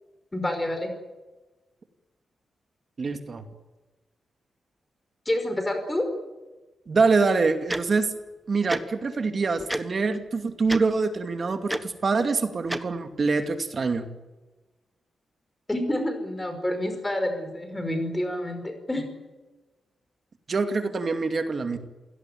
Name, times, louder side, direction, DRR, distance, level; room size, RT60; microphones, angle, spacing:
voice 1, 0.3-0.9 5.3-6.1 15.7-19.1, left 1 dB, 15° left, 7 dB, 5.2 m, -28 dB
voice 2, 3.0-3.4 6.9-8.1 8.5-14.1 20.5-21.8, right 4 dB, 40° right, 7 dB, 2.4 m, -25 dB
Tick-tock, 7.7-7.8 8.7-8.8 9.7-9.8 10.7-10.8 11.7-11.8 12.7-12.8, right 1 dB, 10° right, 1.3 m, -28 dB
28.0 x 17.5 x 9.3 m, 1.2 s
wide cardioid pair, 155°, 0 cm